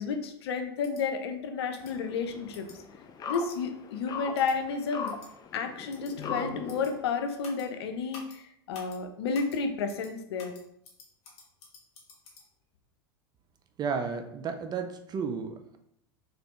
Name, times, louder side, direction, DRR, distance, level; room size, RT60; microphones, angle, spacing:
voice 1, 0.0-2.7 3.3-5.1 5.5-10.5, left 5 dB, 75° left, 6 dB, 0.6 m, -31 dB
sound 1, 0.8-1.0 1.7-1.9 2.5-2.8 3.3-3.6 4.3-4.5 5.0-5.3 5.9-6.1 6.7-6.9 7.4-7.7 8.1-8.4 8.7-9.0 9.3-9.6 9.9-10.1 10.4-12.4, left 4 dB, 50° left, 1.5 m, -50 dB
sound 2, 1.8-7.1, left 6 dB, 30° left, 0.5 m, -40 dB
voice 2, 13.8-15.8, right 5 dB, 30° right, 7 dB, 0.5 m, -33 dB
4.1 x 3.2 x 3.0 m, 0.73 s
hypercardioid pair, 90°, 14 cm